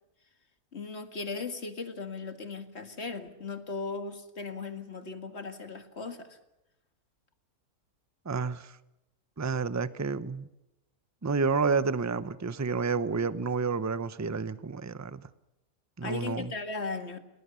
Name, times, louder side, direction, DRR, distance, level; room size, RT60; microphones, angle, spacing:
voice 1, 0.7-6.4 16.0-17.2, left 4 dB, 45° left, 7 dB, 2.2 m, -37 dB
voice 2, 8.2-8.8 9.4-10.5 11.2-15.3 16.0-16.5, right 4 dB, 20° right, 15 dB, 0.4 m, -30 dB
30.0 x 19.0 x 7.0 m, 0.91 s
omnidirectional pair, 1.6 m